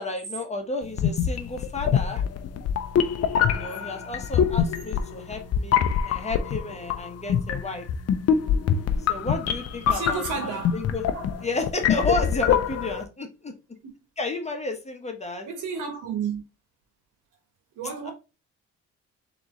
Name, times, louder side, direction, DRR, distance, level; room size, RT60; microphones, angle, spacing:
voice 1, 0.0-2.2 3.5-5.8 6.1-7.9 9.1-11.0 11.4-13.5 14.2-15.5 18.0-18.1, left 2 dB, 20° left, 1.1 m, -32 dB
sound 1, 0.9-13.0, left 8 dB, 55° left, 0.6 m, -25 dB
voice 2, 9.9-10.8 11.1-11.3 13.8-13.9 15.4-16.4 17.7-18.1, right 5 dB, 85° right, 1.4 m, -31 dB
3.9 x 3.0 x 3.7 m
cardioid pair, 90°, 30 cm